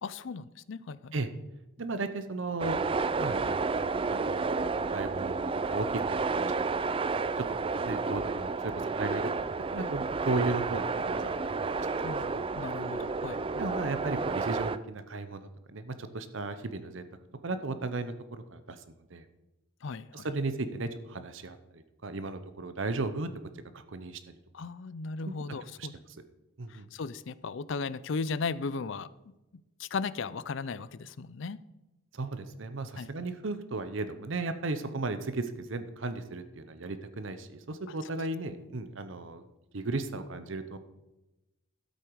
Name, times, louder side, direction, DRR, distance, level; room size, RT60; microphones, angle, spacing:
voice 1, 0.0-1.1 12.0-13.4 19.8-20.3 24.5-25.9 26.7-29.1 29.8-31.6 33.0-33.1, left 4 dB, 60° left, 17 dB, 0.4 m, -36 dB
voice 2, 1.8-2.8 3.2-3.5 4.1-4.4 4.9-6.5 7.0-7.1 7.4-9.3 9.7-11.4 11.7-12.1 12.4-12.5 13.6-17.0 17.4-18.8 19.1-19.2 20.1-23.3 23.7-24.6 25.3-25.4 25.8-25.9 26.6-26.9 32.1-39.4 39.7-40.8, right 3 dB, 60° right, 10 dB, 0.8 m, -35 dB
sound 1, 2.6-14.8, right 4 dB, 25° right, 0.3 m, -31 dB
12.5 x 8.1 x 4.7 m, 1.0 s
head